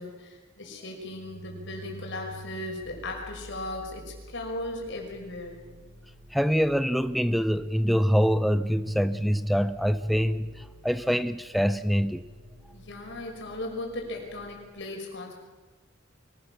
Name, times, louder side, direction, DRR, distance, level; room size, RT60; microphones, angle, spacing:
voice 1, 0.0-5.6 12.7-15.3, left 2 dB, 65° left, 5.8 m, -37 dB
sound 1, 1.0-14.7, right 2 dB, 90° right, 5.3 m, -48 dB
voice 2, 6.3-12.2, equal, ahead, 0.6 m, -25 dB
24.5 x 17.0 x 7.3 m
head